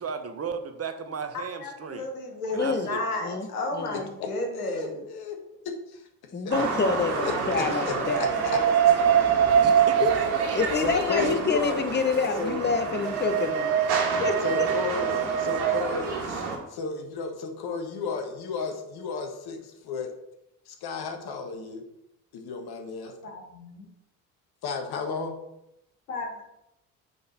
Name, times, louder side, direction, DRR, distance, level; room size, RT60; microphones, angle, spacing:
voice 1, 0.0-2.1 2.5-3.0 9.6-10.0 11.2-11.3, right 6 dB, 35° right, 8 dB, 1.0 m, -35 dB
voice 2, 1.6-5.0 23.0-23.9 26.1-26.4, left 2 dB, 90° left, 2 dB, 1.3 m, -33 dB
voice 3, 2.6-2.9 3.2-3.5 3.7-4.0 6.3-8.2 10.6-13.9 14.2-14.7, left 4 dB, 25° left, 8 dB, 1.0 m, -27 dB
voice 4, 3.9-5.4 5.6-6.1 6.4-6.5 7.2-8.6 9.0-9.1 10.0-10.2 10.8-11.8 12.4-12.6 14.4-16.4 16.7-20.1 20.7-21.8 22.3-23.1 24.6-25.4, left 4 dB, 60° left, 5 dB, 1.4 m, -33 dB
sound 1, 6.5-16.6, right 3 dB, 65° right, 1.8 m, -31 dB
sound 2, 8.0-10.8 12.7-15.8, right 9 dB, 80° right, 0.7 m, -23 dB
6.7 x 5.4 x 4.4 m, 0.84 s
hypercardioid pair, 50°, 43 cm